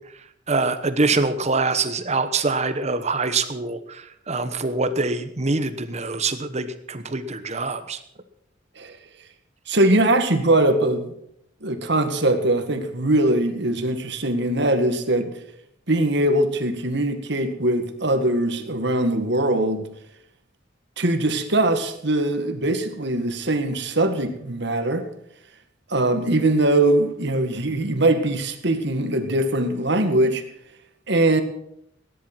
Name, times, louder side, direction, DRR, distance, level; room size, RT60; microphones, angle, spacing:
voice 1, 0.5-8.0, right 3 dB, 35° right, 10 dB, 1.1 m, -24 dB
voice 2, 9.7-11.1 11.6-15.4 15.9-19.9 21.0-25.1 25.9-30.4 31.1-31.4, right 1 dB, 60° right, 7 dB, 1.9 m, -21 dB
17.5 x 10.5 x 6.1 m, 0.74 s
head